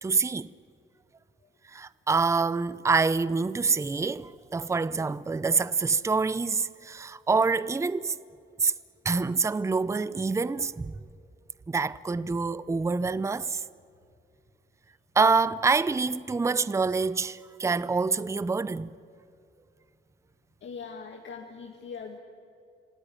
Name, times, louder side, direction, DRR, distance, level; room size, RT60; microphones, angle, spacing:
voice 1, 0.0-0.5 1.7-8.2 8.6-8.7 9.0-10.9 11.7-13.6 15.2-18.9, right 4 dB, 15° right, 0.5 m, -26 dB
voice 2, 20.6-22.2, left 5 dB, 70° left, 2.1 m, -41 dB
26.5 x 18.0 x 9.9 m
cardioid pair, 125°, 20 cm